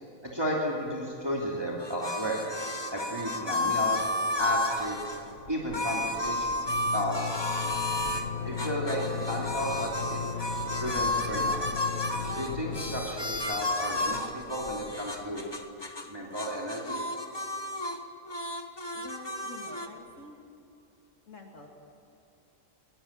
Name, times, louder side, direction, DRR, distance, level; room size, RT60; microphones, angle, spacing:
voice 1, 0.2-2.4 2.9-4.1 4.4-5.1 5.5-7.5 8.4-10.2 10.8-11.6 12.4-15.4 16.1-17.0, equal, 20° right, -3 dB, 2.8 m, -33 dB
sound 1, 1.1-15.3, left 1 dB, 70° right, 6.1 m, -49 dB
sound 2, 1.8-5.2 5.7-8.3 8.6-16.1 16.3-18.0 18.3-19.9, left 2 dB, 20° left, 1.2 m, -32 dB
sound 3, 3.6-4.1 4.4-4.5 4.8-15.4, left 7 dB, 85° left, 1.6 m, -38 dB
voice 2, 18.9-20.4 21.3-21.7, left 3 dB, 65° left, 1 dB, 2.6 m, -47 dB
22.0 x 20.5 x 8.7 m, 2.7 s
omnidirectional pair, 1.4 m